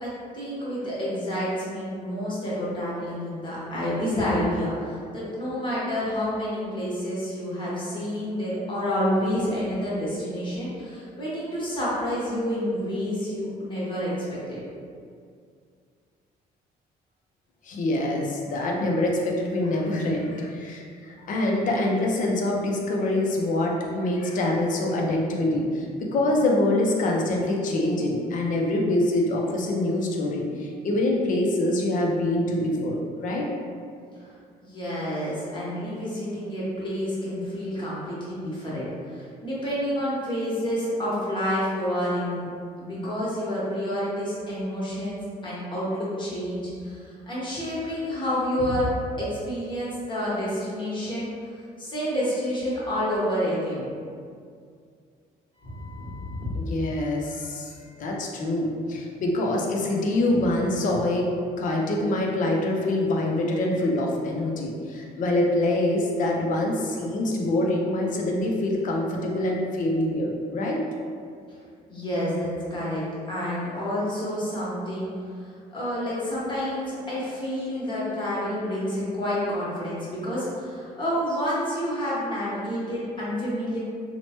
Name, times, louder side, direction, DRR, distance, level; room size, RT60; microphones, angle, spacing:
voice 1, 0.0-14.6 34.2-34.3 34.6-42.5 42.8-48.9 49.2-51.3 51.8-53.9 55.6-56.4 71.9-75.1 75.4-83.8, equal, 30° left, -8 dB, 1.1 m, -29 dB
voice 2, 17.6-25.9 26.1-33.5 56.5-57.7 58.0-61.3 61.6-70.8, left 1 dB, 50° left, -1 dB, 0.5 m, -25 dB
3.0 x 2.1 x 2.9 m, 2.2 s
cardioid pair, 110°, 17 cm